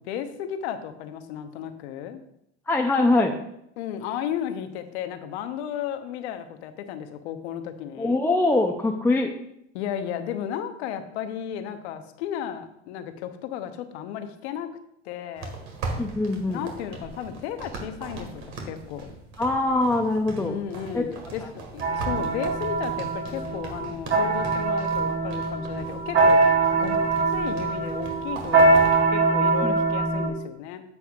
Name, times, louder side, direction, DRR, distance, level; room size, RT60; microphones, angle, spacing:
voice 1, 0.0-2.2 3.8-8.2 9.7-14.7 15.0-15.5 16.5-19.1 20.4-26.4 26.8-27.0 27.3-28.8 29.1-30.8, left 9 dB, 80° left, 8 dB, 0.9 m, -34 dB
voice 2, 2.7-3.4 8.0-9.3 16.0-16.6 19.4-20.6 20.9-21.2 29.6-29.8, left 2 dB, 5° left, 2 dB, 0.5 m, -23 dB
sound 1, 15.4-29.0, right 3 dB, 55° right, 1.8 m, -39 dB
sound 2, 21.8-30.3, right 3 dB, 40° right, 3.0 m, -23 dB
9.6 x 7.0 x 2.4 m, 0.76 s
supercardioid pair, 105°, 33 cm